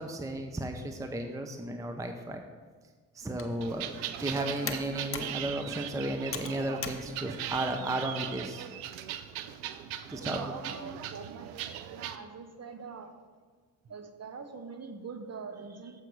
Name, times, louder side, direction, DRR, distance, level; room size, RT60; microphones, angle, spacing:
voice 1, 0.0-2.4 3.1-8.7 10.1-10.4, right 1 dB, 5° right, 5 dB, 0.7 m, -34 dB
Computer keyboard, 3.2-8.4, left 5 dB, 25° left, 0.9 m, -43 dB
voice 2, 3.5-3.8 10.2-11.6 11.9-13.1 13.8-16.0, right 5 dB, 30° right, 6 dB, 1.0 m, -44 dB
sound 1, 3.6-12.2, right 10 dB, 70° right, 0.6 m, -39 dB
7.5 x 4.8 x 7.1 m, 1.5 s
hypercardioid pair, 45°, 48 cm